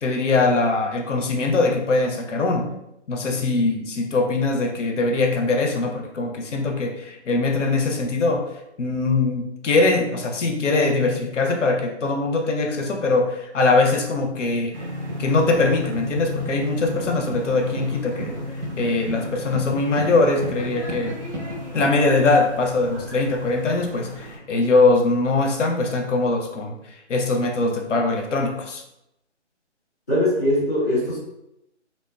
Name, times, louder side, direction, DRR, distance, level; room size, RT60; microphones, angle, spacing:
voice 1, 0.0-2.7 3.1-8.4 8.8-14.7 15.2-21.2 21.7-28.8, left 3 dB, 85° left, 2 dB, 0.6 m, -22 dB
sound 1, 14.7-24.4, equal, 65° right, 1.0 m, -32 dB
voice 2, 30.1-31.2, left 1 dB, 15° left, -13 dB, 0.6 m, -21 dB
2.6 x 2.1 x 2.2 m, 0.84 s
figure-of-eight pair, 160°, 36 cm